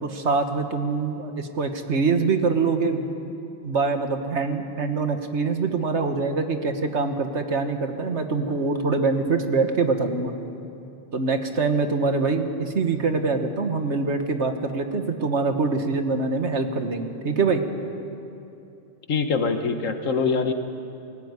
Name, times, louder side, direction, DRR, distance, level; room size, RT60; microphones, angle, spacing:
voice 1, 0.0-3.1 3.6-10.3 11.1-17.6, right 4 dB, 60° right, 6 dB, 1.7 m, -24 dB
voice 2, 19.1-20.5, left 4 dB, 80° left, 7 dB, 1.7 m, -23 dB
19.5 x 17.5 x 9.7 m, 2.7 s
omnidirectional pair, 1.3 m